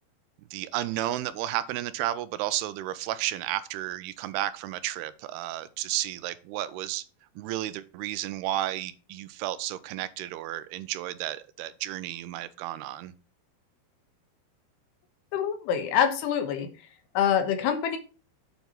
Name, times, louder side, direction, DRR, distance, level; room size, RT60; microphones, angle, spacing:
voice 1, 0.5-7.0 7.4-13.1, right 14 dB, 90° right, 2.6 m, -32 dB
voice 2, 15.3-16.7 17.1-18.0, left 8 dB, 90° left, 3.3 m, -25 dB
8.3 x 4.6 x 5.7 m
omnidirectional pair, 4.6 m